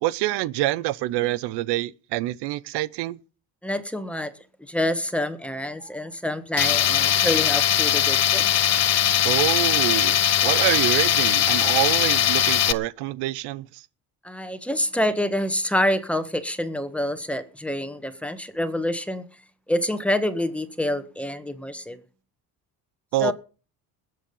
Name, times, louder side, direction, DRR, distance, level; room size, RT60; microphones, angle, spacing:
voice 1, 0.0-3.2 9.2-10.2 10.4-13.8 23.1-23.3, right 16 dB, 80° right, 0.7 m, -26 dB
voice 2, 3.6-4.3 4.6-8.4 14.2-19.2 19.7-22.0 23.2-23.3, left 1 dB, 5° left, 1.5 m, -27 dB
Tools, 6.6-12.7, left 10 dB, 40° left, 0.8 m, -20 dB
20.5 x 7.7 x 5.4 m
cardioid pair, 115°, 40 cm